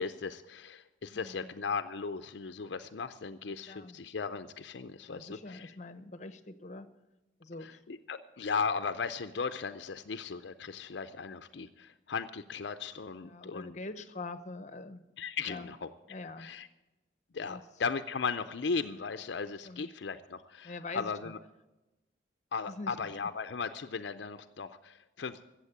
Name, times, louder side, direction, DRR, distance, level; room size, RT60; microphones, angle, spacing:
voice 1, 0.0-5.7 7.6-13.8 15.2-15.9 16.4-16.7 17.3-21.4 22.5-25.4, left 5 dB, 70° left, 9 dB, 0.5 m, -37 dB
voice 2, 1.1-1.5 3.7-4.0 5.1-6.9 7.4-7.8 13.2-15.0 15.5-15.7 16.1-16.5 17.5-17.6 19.6-19.9 20.6-21.3 22.7-23.1, left 2 dB, 40° left, 12 dB, 0.8 m, -44 dB
14.5 x 7.6 x 8.6 m, 1.0 s
head